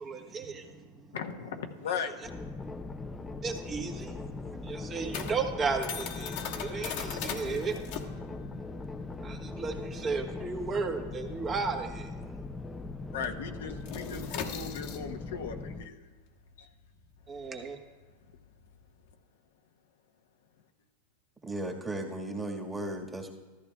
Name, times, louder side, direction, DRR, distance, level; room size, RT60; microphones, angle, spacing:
voice 1, 0.0-1.1 2.0-2.1 3.4-7.7 8.1-8.6 8.9-12.1 17.3-17.8, right 4 dB, 30° right, 4 dB, 1.2 m, -35 dB
voice 2, 1.1-2.4 13.1-16.0 16.6-16.7, left 7 dB, 80° left, 5 dB, 1.0 m, -37 dB
sound 1, 2.2-15.9, left 3 dB, 15° left, 0.5 m, -40 dB
sound 2, 3.6-12.6 12.8-13.1 13.4-19.1, left 8 dB, 60° left, 1.3 m, -41 dB
voice 3, 21.4-23.3, right 1 dB, 15° right, 0 dB, 1.6 m, -36 dB
13.5 x 13.5 x 2.3 m, 1.3 s
hypercardioid pair, 110°, 0 cm